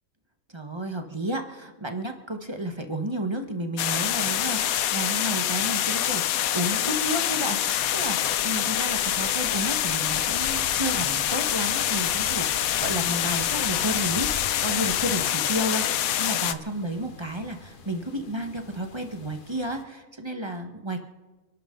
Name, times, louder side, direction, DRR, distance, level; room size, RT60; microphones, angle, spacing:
voice 1, 0.5-14.3 14.6-21.0, right 1 dB, 20° right, 5 dB, 1.3 m, -32 dB
sound 1, 3.8-16.5, left 11 dB, 85° left, 1.1 m, -26 dB
sound 2, 6.0-6.1 7.5-15.4, equal, 20° left, 2.8 m, -44 dB
sound 3, 7.9-19.8, left 5 dB, 40° left, 1.1 m, -46 dB
29.0 x 12.0 x 3.8 m, 1.2 s
omnidirectional pair, 1.4 m